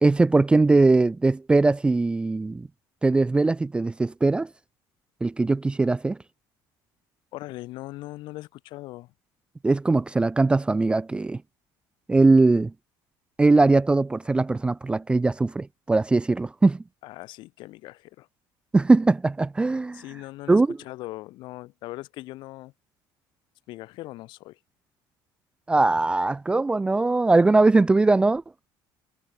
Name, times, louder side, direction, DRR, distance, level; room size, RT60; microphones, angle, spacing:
voice 1, 0.0-2.7 3.0-4.5 5.2-6.2 9.6-11.4 12.1-12.7 13.4-16.8 18.7-20.0 20.5-20.8 25.7-28.4, right 3 dB, 10° right, 0.4 m, -20 dB
voice 2, 7.3-9.1 17.0-18.3 19.9-22.7 23.7-24.6, left 18 dB, 70° left, 2.7 m, -40 dB
cardioid pair, 130°, 8 cm